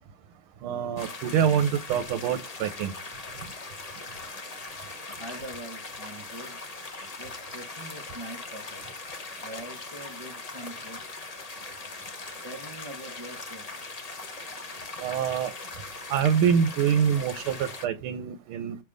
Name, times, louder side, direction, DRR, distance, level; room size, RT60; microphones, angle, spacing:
voice 1, 0.6-2.9 15.0-15.5 16.1-18.8, right 8 dB, 85° right, 1.6 m, -25 dB
sound 1, 1.0-17.9, left 3 dB, 70° left, 0.3 m, -40 dB
voice 2, 5.2-6.6 7.2-8.9 9.4-11.3 12.4-13.8, right 1 dB, 25° right, 0.5 m, -43 dB
6.5 x 3.4 x 4.9 m
omnidirectional pair, 2.3 m